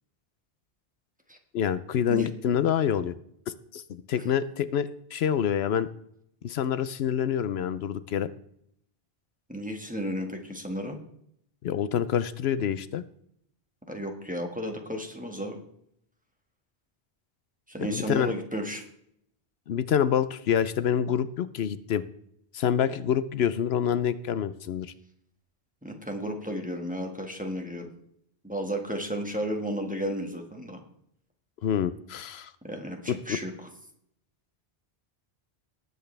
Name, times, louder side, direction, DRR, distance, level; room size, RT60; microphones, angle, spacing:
voice 1, 1.5-3.2 3.5-3.8 4.1-5.9 6.4-8.3 11.6-13.0 17.8-18.3 19.7-22.0 22.5-24.9 31.6-32.5 33.1-33.4, left 8 dB, 80° left, 14 dB, 0.9 m, -27 dB
voice 2, 9.5-11.0 13.9-15.6 17.7-18.9 25.8-27.9 28.4-30.8 32.6-33.5, equal, 10° right, 3 dB, 1.6 m, -33 dB
19.0 x 8.1 x 3.3 m, 0.71 s
omnidirectional pair, 1.0 m